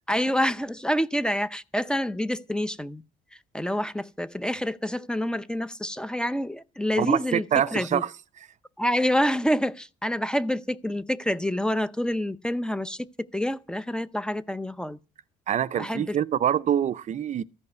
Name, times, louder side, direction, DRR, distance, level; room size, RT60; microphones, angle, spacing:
voice 1, 0.1-3.0 3.5-7.4 7.7-8.0 8.8-13.1 13.3-15.0 15.7-16.2, equal, 5° left, 0.6 m, -27 dB
voice 2, 7.0-8.1 15.5-17.4, right 10 dB, 45° right, 0.5 m, -25 dB
14.5 x 5.5 x 9.3 m
cardioid pair, 110°, 17 cm